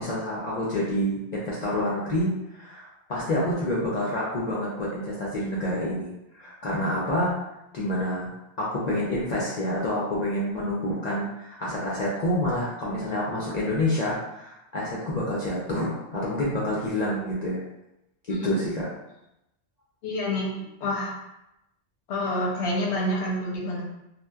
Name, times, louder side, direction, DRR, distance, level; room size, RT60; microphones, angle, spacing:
voice 1, 0.0-7.4 7.7-8.3 8.6-17.6 18.3-18.9, left 1 dB, 55° left, -6 dB, 0.5 m, -28 dB
voice 2, 20.0-21.2 22.1-23.8, left 1 dB, 85° left, -3 dB, 1.0 m, -28 dB
2.7 x 2.0 x 2.2 m, 0.89 s
omnidirectional pair, 1.1 m